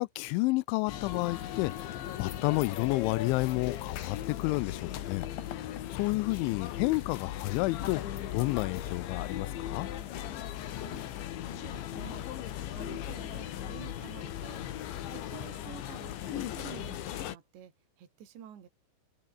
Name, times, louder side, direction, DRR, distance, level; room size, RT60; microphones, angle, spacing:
voice 1, 0.0-5.3 5.5-8.0 8.3-9.9, left 23 dB, 85° left, 2.9 m, -31 dB
sound 1, 0.9-17.4, left 11 dB, 70° left, 4.2 m, -38 dB
voice 2, 10.7-11.1 11.5-12.3 12.7-14.7 15.1-18.7, right 9 dB, 65° right, 5.4 m, -49 dB
omnidirectional pair, 5.7 m